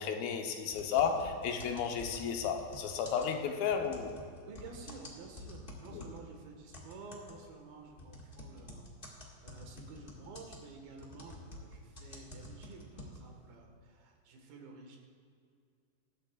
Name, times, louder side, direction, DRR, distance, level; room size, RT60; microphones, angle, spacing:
voice 1, 0.0-4.1 5.9-6.0, left 7 dB, 80° left, 4 dB, 2.7 m, -33 dB
sound 1, 0.7-6.3 6.7-13.4, left 1 dB, 40° left, 0.7 m, -49 dB
voice 2, 4.5-15.0, right 4 dB, 85° right, 1 dB, 3.5 m, -51 dB
22.5 x 11.5 x 2.4 m, 2.4 s
omnidirectional pair, 4.2 m